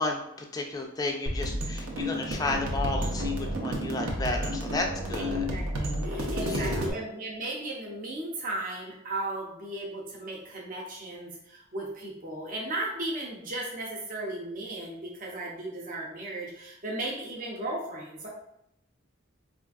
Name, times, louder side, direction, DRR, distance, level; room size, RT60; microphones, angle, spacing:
voice 1, 0.0-5.5 6.4-6.9, left 2 dB, 15° left, 2 dB, 0.3 m, -33 dB
sound 1, 1.3-6.9, equal, 80° right, 0.7 m, -31 dB
voice 2, 5.2-18.3, right 2 dB, 40° right, -2 dB, 0.6 m, -36 dB
4.2 x 2.5 x 2.4 m, 0.78 s
head